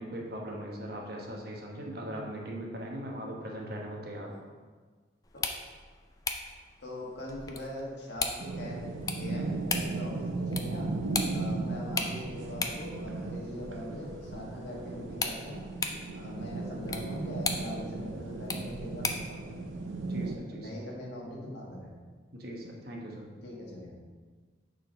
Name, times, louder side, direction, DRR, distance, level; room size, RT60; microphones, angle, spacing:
voice 1, 0.0-4.3 20.0-20.7 22.3-23.3, right 1 dB, 55° right, -1 dB, 1.1 m, -39 dB
sound 1, 5.2-19.4, left 4 dB, 20° left, 0.4 m, -39 dB
voice 2, 6.8-11.0 11.3-15.6 16.1-19.7 20.5-21.9 23.4-24.0, left 1 dB, 60° left, -3 dB, 1.5 m, -41 dB
sound 2, 8.4-20.4, right 3 dB, 90° right, 0.7 m, -36 dB
6.8 x 4.0 x 5.2 m, 1.5 s
head